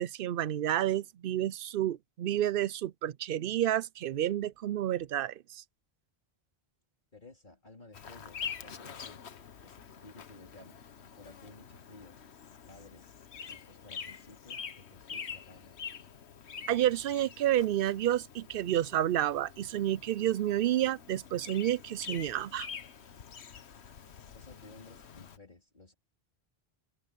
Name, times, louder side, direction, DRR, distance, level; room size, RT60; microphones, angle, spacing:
voice 1, 0.0-5.6 16.7-22.7, right 12 dB, 65° right, 0.7 m, -30 dB
voice 2, 7.1-9.3 9.6-10.8 11.1-12.2 12.7-15.8 24.3-25.9, left 2 dB, 50° left, 3.8 m, -55 dB
Bird vocalization bird call bird song, 7.9-25.4, left 6 dB, 85° left, 1.4 m, -46 dB
omnidirectional pair, 1.1 m